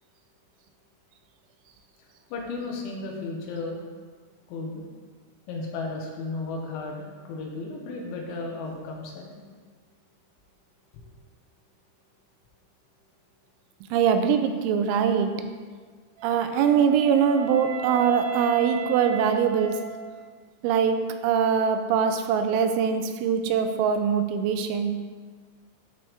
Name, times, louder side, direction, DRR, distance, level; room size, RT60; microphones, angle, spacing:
voice 1, 2.3-3.8 4.5-4.8 5.5-9.4 10.9-11.0, left 3 dB, 75° left, 0 dB, 3.1 m, -34 dB
voice 2, 13.9-15.3 16.2-19.8 20.6-21.0 21.2-24.9, right 7 dB, 90° right, 7 dB, 3.3 m, -22 dB
Wind instrument woodwind instrument, 16.2-20.4, right 9 dB, 70° right, 2.3 m, -36 dB
13.0 x 4.4 x 3.5 m, 1.5 s
omnidirectional pair, 5.8 m